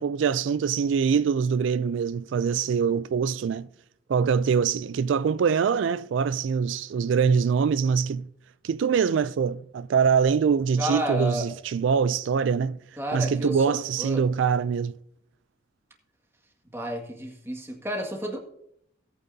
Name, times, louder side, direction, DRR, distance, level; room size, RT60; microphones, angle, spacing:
voice 1, 0.0-3.7 4.1-8.3 8.6-12.8 13.1-14.9, right 6 dB, 80° right, 0.3 m, -24 dB
voice 2, 10.8-11.4 13.0-14.2 16.7-18.4, right 1 dB, 15° right, 1.9 m, -31 dB
17.5 x 9.1 x 2.7 m
head